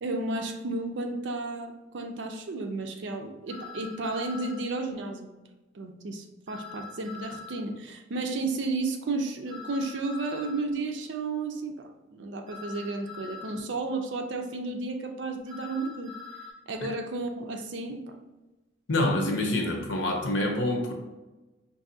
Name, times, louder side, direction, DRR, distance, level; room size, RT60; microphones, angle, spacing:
voice 1, 0.0-5.3 5.7-16.2 16.7-18.2, right 3 dB, 80° right, 5 dB, 0.5 m, -33 dB
sound 1, 3.5-4.6 6.5-7.6 9.5-10.6 12.5-13.6 15.5-16.5, left 4 dB, 35° right, 1.5 m, -43 dB
voice 2, 18.9-20.9, left 1 dB, 90° left, 2 dB, 0.8 m, -26 dB
4.7 x 2.7 x 2.7 m, 1.1 s
head